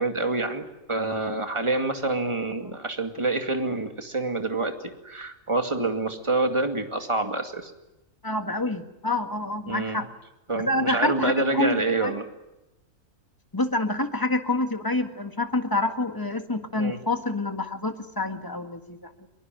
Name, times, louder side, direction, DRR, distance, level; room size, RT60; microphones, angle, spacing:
voice 1, 0.0-7.7 9.7-10.0 10.5-12.3 16.8-17.0, right 2 dB, 20° right, 5 dB, 2.4 m, -27 dB
voice 2, 8.2-10.1 10.7-12.1 13.5-19.3, left 2 dB, 15° left, 7 dB, 1.7 m, -27 dB
23.0 x 22.5 x 9.3 m, 0.95 s
omnidirectional pair, 1.4 m